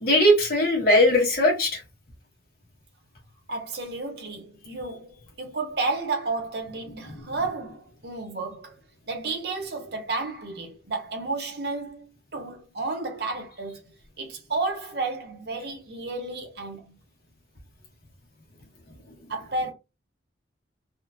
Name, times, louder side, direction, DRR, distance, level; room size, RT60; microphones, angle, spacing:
voice 1, 0.0-1.8 7.0-7.2, left 1 dB, 50° left, 1.5 m, -20 dB
voice 2, 3.5-8.8 9.1-13.8 14.2-16.9 19.3-19.7, right 3 dB, 55° right, 0.8 m, -32 dB
3.6 x 2.0 x 2.6 m
head